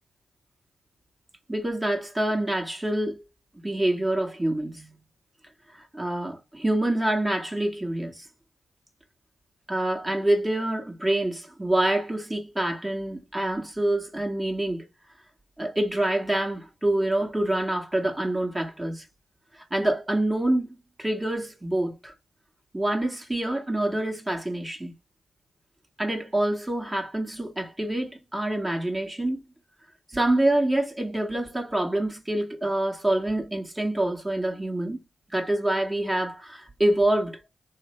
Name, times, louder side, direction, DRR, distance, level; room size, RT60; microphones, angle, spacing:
voice 1, 1.5-3.2 3.6-4.9 5.7-8.2 9.7-14.8 15.6-19.0 19.7-20.7 21.0-22.1 22.7-24.9 26.0-29.4 30.1-35.0 35.3-37.5, right 1 dB, 20° right, 1.3 m, -26 dB
3.2 x 2.1 x 3.1 m
supercardioid pair, 45°, 0 cm